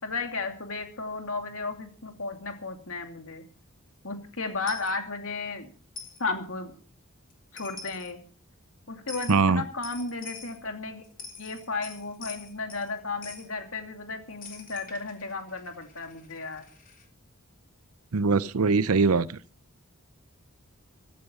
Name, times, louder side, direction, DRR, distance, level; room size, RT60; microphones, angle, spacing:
voice 1, 0.0-3.4 4.0-5.7 6.2-6.7 7.5-8.2 8.9-11.0 11.4-16.6, left 3 dB, 70° left, 2.7 m, -34 dB
Coin (dropping), 4.7-4.9 6.0-6.2 7.3-7.4 7.6-8.1 9.1-9.4 9.8-10.6 11.0-12.9 13.2-13.5 14.4-17.1, left 5 dB, 40° left, 3.5 m, -44 dB
voice 2, 9.3-9.6 18.1-19.4, right 4 dB, 85° right, 0.7 m, -22 dB
16.0 x 13.5 x 5.4 m
head